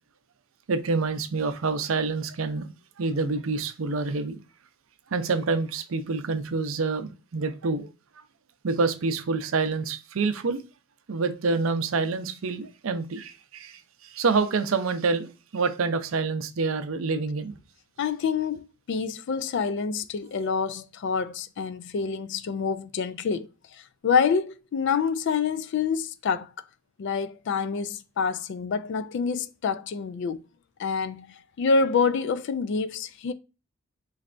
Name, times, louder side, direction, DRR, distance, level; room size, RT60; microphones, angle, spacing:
voice 1, 0.7-2.7 3.0-4.4 5.1-7.9 8.6-10.6 11.1-17.5, right 4 dB, 75° right, 0.5 m, -27 dB
voice 2, 18.0-26.5 27.0-30.4 30.8-33.3, left 5 dB, 60° left, 0.3 m, -27 dB
3.9 x 3.2 x 2.5 m
head